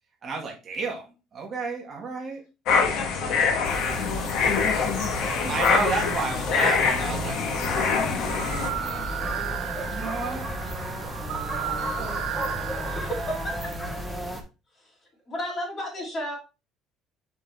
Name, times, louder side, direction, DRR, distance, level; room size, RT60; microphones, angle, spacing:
voice 1, 0.2-2.4 5.5-7.6 8.0-8.3 8.6-9.1 9.6-10.5 11.6-12.2, right 4 dB, 25° right, 0 dB, 1.7 m, -32 dB
sound 1, 2.7-8.7, left 5 dB, 55° left, 1.2 m, -24 dB
voice 2, 2.8-5.5 5.8-6.1 6.5-6.7, left 5 dB, 85° left, 0 dB, 3.5 m, -38 dB
sound 2, 3.6-14.4, equal, ahead, 0.9 m, -34 dB
sound 3, 8.2-14.0, right 11 dB, 75° right, 0.7 m, -35 dB
voice 3, 9.4-10.0 12.8-13.7 14.8-14.9 15.3-16.4, equal, 20° left, -1 dB, 2.4 m, -34 dB
7.3 x 4.3 x 3.3 m, 0.29 s
cardioid pair, 175°, 0 cm